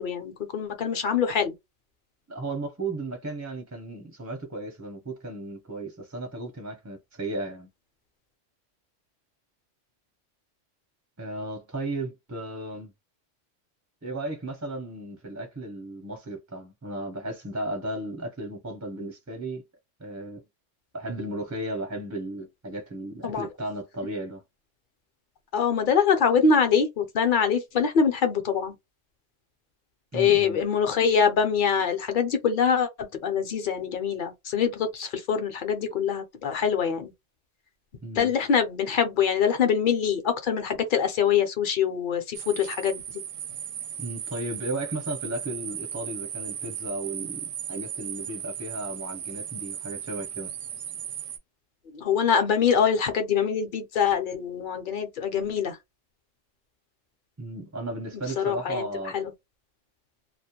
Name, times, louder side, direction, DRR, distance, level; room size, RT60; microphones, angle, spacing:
voice 1, 0.0-1.5 23.2-23.5 25.5-28.7 30.1-37.1 38.2-43.0 51.9-55.8 58.4-58.9 59.1-59.3, left 7 dB, 55° left, 0.6 m, -24 dB
voice 2, 2.3-7.7 11.2-12.9 14.0-19.6 20.0-20.4 20.9-24.4 30.1-30.6 38.0-38.3 44.0-50.5 57.4-59.2, right 2 dB, 20° right, 0.4 m, -35 dB
sound 1, 42.3-51.4, right 9 dB, 75° right, 0.9 m, -36 dB
2.3 x 2.1 x 2.8 m
omnidirectional pair, 1.3 m